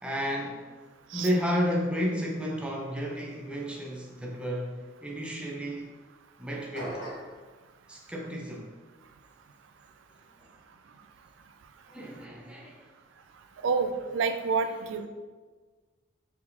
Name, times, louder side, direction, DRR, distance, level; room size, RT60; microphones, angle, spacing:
voice 1, 0.0-0.7 1.1-5.9 6.4-7.0 7.9-8.7 10.4-10.5 11.9-12.9 14.8-15.1, equal, 5° right, -2 dB, 0.5 m, -32 dB
sound 1, 6.7-7.4, equal, 65° left, 1.3 m, -37 dB
voice 2, 13.6-15.1, right 5 dB, 80° right, 8 dB, 0.3 m, -28 dB
4.5 x 3.6 x 2.6 m, 1.4 s
head